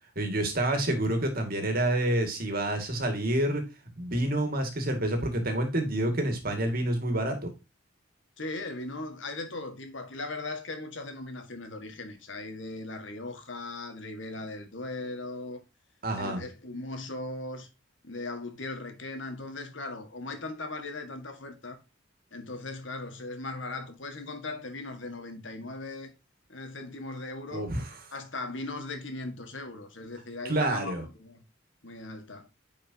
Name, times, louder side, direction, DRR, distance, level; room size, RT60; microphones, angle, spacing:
voice 1, 0.2-3.6 4.0-7.5 16.0-16.4 27.5-27.9 30.4-31.1, right 1 dB, 50° right, 2.1 m, -28 dB
voice 2, 8.4-15.6 16.1-17.7 18.0-21.8 22.3-26.1 26.5-27.7 28.1-31.4 31.8-32.5, left 2 dB, 70° left, 1.7 m, -38 dB
9.8 x 5.1 x 2.8 m
head